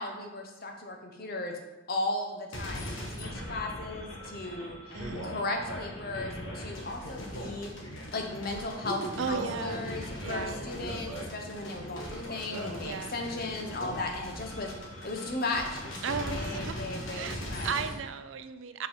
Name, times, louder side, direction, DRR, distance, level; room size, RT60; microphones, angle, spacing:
voice 1, 0.0-1.6 1.9-2.9 3.2-7.7 8.1-14.7 15.0-17.7, left 2 dB, 50° left, 2 dB, 0.9 m, -36 dB
sound 1, 2.5-18.0, equal, 80° left, 1.3 m, -39 dB
voice 2, 4.9-5.3 9.2-9.9 10.2-10.6 12.8-13.1 16.0-16.8 17.1-17.4 17.6-18.9, right 6 dB, 70° right, 11 dB, 0.4 m, -35 dB
5.3 x 4.1 x 5.5 m, 1.1 s
head